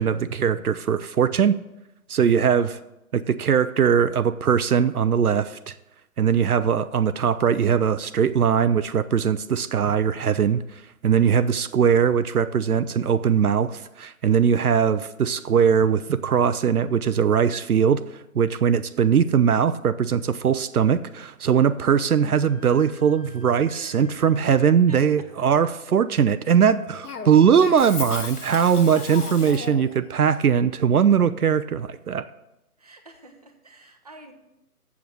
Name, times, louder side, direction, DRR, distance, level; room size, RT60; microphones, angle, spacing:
voice 1, 0.0-1.6 2.1-2.7 3.1-5.7 6.2-18.0 18.3-32.3, right 7 dB, 75° right, 13 dB, 0.6 m, -20 dB
voice 2, 2.4-2.9 23.7-24.1 24.9-25.3 28.4-29.2 32.8-34.3, right 2 dB, 25° right, 4 dB, 0.6 m, -48 dB
Wind instrument woodwind instrument, 21.9-29.3, left 3 dB, 5° left, 1.0 m, -57 dB
Cough, 27.0-30.0, left 5 dB, 80° left, 1.0 m, -35 dB
7.2 x 6.9 x 6.1 m, 0.90 s
figure-of-eight pair, 150°, 45 cm